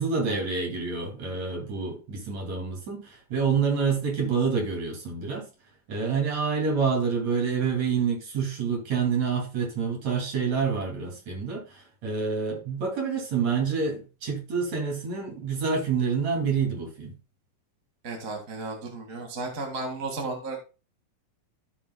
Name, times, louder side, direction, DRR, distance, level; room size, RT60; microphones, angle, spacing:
voice 1, 0.0-5.5 5.9-17.1, right 5 dB, 50° right, 3.6 m, -27 dB
voice 2, 18.0-20.6, right 3 dB, 30° right, 1.8 m, -34 dB
15.0 x 6.0 x 2.3 m
omnidirectional pair, 4.0 m